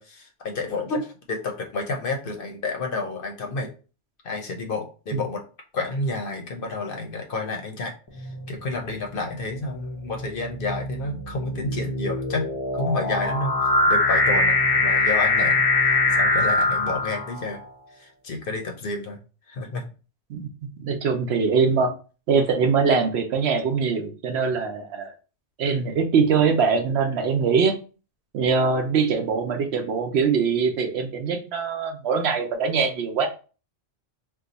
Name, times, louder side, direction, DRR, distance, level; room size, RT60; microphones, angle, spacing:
voice 1, 0.0-3.7 4.2-5.4 5.7-13.5 13.9-15.6 16.1-17.6 18.0-19.2 19.5-19.8, left 3 dB, 60° left, 3 dB, 0.7 m, -30 dB
sound 1, 8.2-8.6 9.4-17.6, left 2 dB, 35° left, 0.4 m, -22 dB
voice 2, 20.8-21.9 22.3-25.1 25.6-27.8 28.3-33.3, right 5 dB, 70° right, 5 dB, 0.8 m, -22 dB
2.7 x 2.3 x 3.8 m, 0.35 s
omnidirectional pair, 1.2 m